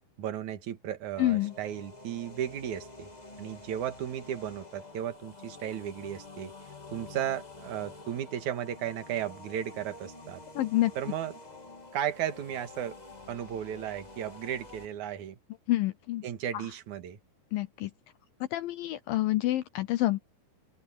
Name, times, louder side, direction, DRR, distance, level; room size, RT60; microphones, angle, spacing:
voice 1, 0.2-3.1 3.4-6.5 6.9-10.4 11.0-11.3 11.9-13.0 13.3-15.4 16.2-17.2, right 10 dB, 55° right, 2.8 m, -35 dB
sound 1, 1.1-14.9, left 2 dB, 65° left, 0.4 m, -48 dB
voice 2, 1.2-1.5 10.6-10.9 15.7-16.3 17.5-17.9 18.5-20.2, left 16 dB, 80° left, 2.1 m, -27 dB
open air
omnidirectional pair, 4.7 m